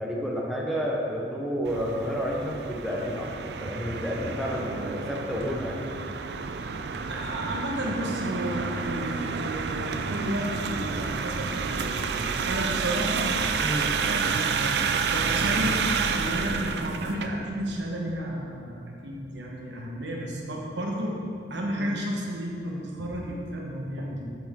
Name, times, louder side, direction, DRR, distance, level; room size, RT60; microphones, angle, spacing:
voice 1, 0.0-5.8 13.6-13.9 21.8-21.9, equal, ahead, -3 dB, 0.8 m, -30 dB
sound 1, 1.6-17.3, right 5 dB, 70° right, 0.4 m, -29 dB
voice 2, 7.1-13.4 14.1-14.7 15.1-15.8 16.1-21.2 21.5-24.3, equal, 85° right, -1 dB, 1.2 m, -32 dB
8.1 x 6.2 x 3.7 m, 2.4 s
head